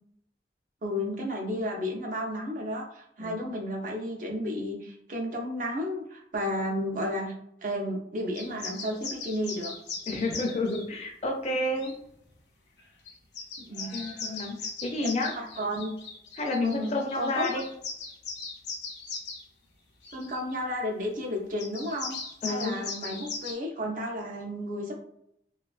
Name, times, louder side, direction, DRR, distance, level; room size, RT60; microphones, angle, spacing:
voice 1, 0.8-7.3 7.6-9.7 13.6-13.9 15.4-15.9 16.6-17.6 20.1-22.2 22.5-24.9, equal, 45° right, 0 dB, 0.5 m, -32 dB
sound 1, 8.3-10.8 11.7-11.9 12.8-12.9 13.1-19.4 20.0-20.4 21.6-23.5, left 4 dB, 80° left, 0.6 m, -39 dB
voice 2, 10.1-11.9 13.9-14.6 14.8-15.3 16.3-17.7 22.4-22.8, left 2 dB, 35° left, 2 dB, 0.4 m, -30 dB
2.3 x 2.3 x 2.3 m, 0.73 s
head